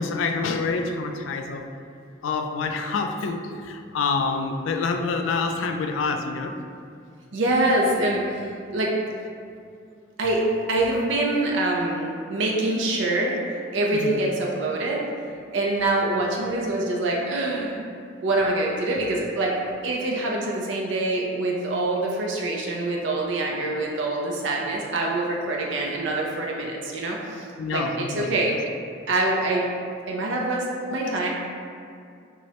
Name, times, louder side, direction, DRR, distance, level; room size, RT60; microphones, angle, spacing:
voice 1, 0.0-1.7 2.2-6.6 13.9-14.2 27.6-28.5 31.0-31.1, left 4 dB, 85° left, 6 dB, 0.3 m, -27 dB
voice 2, 7.3-9.0 10.2-13.4 13.7-15.0 15.5-17.8 18.2-19.5 19.8-28.5 29.1-29.6 30.1-31.3, right 2 dB, 75° right, -2 dB, 0.5 m, -25 dB
6.0 x 2.1 x 2.8 m, 2.4 s
head